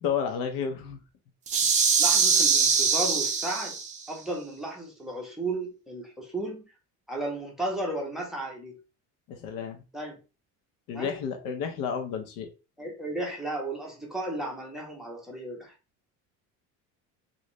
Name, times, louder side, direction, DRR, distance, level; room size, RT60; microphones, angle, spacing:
voice 1, 0.0-1.0 9.3-9.8 10.9-12.5, left 7 dB, 65° left, 1.0 m, -31 dB
sound 1, 1.5-4.0, right 5 dB, 20° right, 0.4 m, -23 dB
voice 2, 2.0-3.8 4.1-6.7 7.1-8.8 9.9-10.2 10.9-11.2 12.8-15.7, right 2 dB, ahead, 0.8 m, -34 dB
3.1 x 2.7 x 3.1 m
cardioid pair, 170°, 35 cm